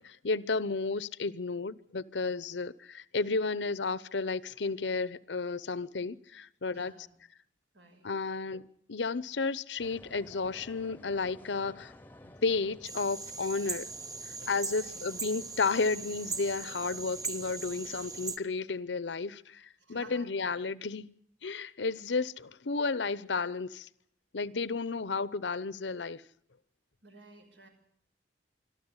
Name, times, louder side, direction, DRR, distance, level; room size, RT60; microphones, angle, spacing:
voice 1, 0.0-6.9 8.0-11.9 12.4-13.9 14.4-21.1 21.4-23.9 24.3-26.2, left 4 dB, 85° left, 0.8 m, -32 dB
voice 2, 6.7-7.1 7.7-8.1 14.7-15.0 19.8-20.5 27.0-27.7, right 2 dB, 85° right, 5.8 m, -54 dB
sound 1, 9.8-18.4, left 1 dB, 10° left, 0.8 m, -54 dB
sound 2, 12.8-18.4, right 4 dB, 20° right, 0.9 m, -39 dB
25.5 x 13.0 x 9.8 m
head